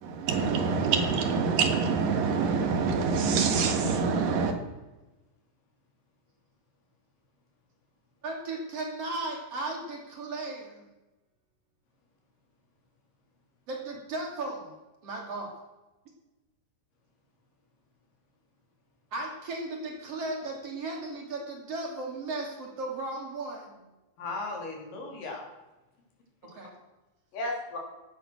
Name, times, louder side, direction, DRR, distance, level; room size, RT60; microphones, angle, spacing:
voice 1, 0.0-4.5, right 5 dB, 80° right, 5 dB, 3.4 m, -26 dB
voice 2, 8.2-10.8 13.7-14.8 15.0-15.5 19.1-23.9 26.4-26.7, right 2 dB, 45° right, 1 dB, 3.6 m, -36 dB
voice 3, 24.2-25.4 26.4-26.5 27.3-27.8, left 2 dB, 75° left, 0 dB, 4.9 m, -35 dB
16.0 x 10.5 x 6.3 m, 1.1 s
omnidirectional pair, 3.9 m